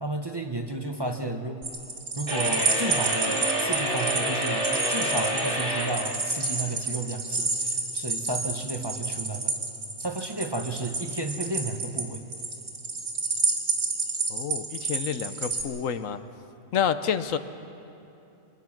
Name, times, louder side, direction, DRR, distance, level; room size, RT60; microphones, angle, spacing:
voice 1, 0.0-1.6 2.2-9.5 10.0-12.2, right 2 dB, 20° right, 4 dB, 1.0 m, -32 dB
sound 1, 1.6-15.6, right 3 dB, 85° right, 2.8 m, -30 dB
sound 2, 2.3-5.9, right 1 dB, 40° right, 6.4 m, -28 dB
voice 2, 14.3-16.2 16.7-17.4, left 8 dB, 80° left, 11 dB, 1.2 m, -28 dB
26.0 x 21.5 x 6.0 m, 2.8 s
omnidirectional pair, 1.4 m